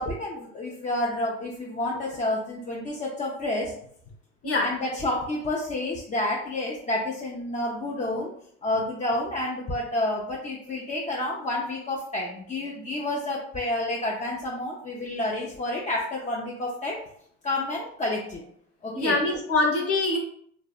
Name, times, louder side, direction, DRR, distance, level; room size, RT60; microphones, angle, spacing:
voice 1, 0.0-3.7 4.6-8.3 8.6-17.0 17.4-18.4 18.8-19.2, left 1 dB, 20° left, -3 dB, 0.4 m, -29 dB
voice 2, 18.9-20.2, left 2 dB, 45° left, -1 dB, 0.9 m, -24 dB
2.6 x 2.1 x 2.3 m, 0.66 s
supercardioid pair, 90°, 33 cm